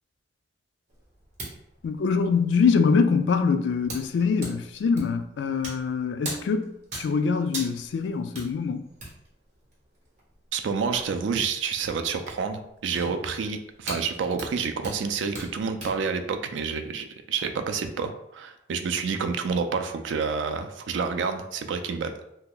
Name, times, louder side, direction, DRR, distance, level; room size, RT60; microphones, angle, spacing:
sound 1, 0.9-16.0, right 2 dB, 45° right, 1.2 m, -43 dB
voice 1, 1.8-8.9, left 5 dB, 75° left, 0.3 m, -24 dB
voice 2, 10.5-22.1, right 5 dB, 80° right, 0.4 m, -29 dB
2.8 x 2.2 x 3.7 m
head